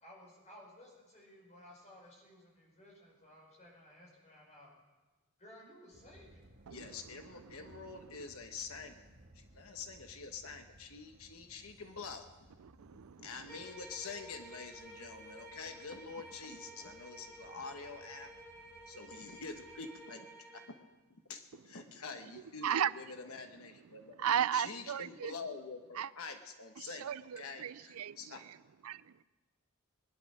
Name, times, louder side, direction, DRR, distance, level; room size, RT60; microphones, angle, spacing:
voice 1, 0.0-4.7 5.4-6.4, left 1 dB, 35° left, -2 dB, 5.7 m, -57 dB
sound 1, 5.9-19.8, right 1 dB, 50° right, 1.6 m, -62 dB
voice 2, 6.7-8.9 9.3-12.3 13.2-18.3 18.9-20.7 21.3-24.2 24.5-27.1 27.4-27.6 28.2-28.4, left 4 dB, 75° left, 6 dB, 1.1 m, -46 dB
voice 3, 7.4-8.3 12.6-13.7 22.6-22.9 23.9-25.3 25.9-26.1 26.8-28.6 28.8-29.2, right 9 dB, 80° right, 18 dB, 0.4 m, -37 dB
sound 2, 13.5-20.8, right 1 dB, 15° left, 3.5 m, -53 dB
21.0 x 11.0 x 6.2 m, 1.2 s
head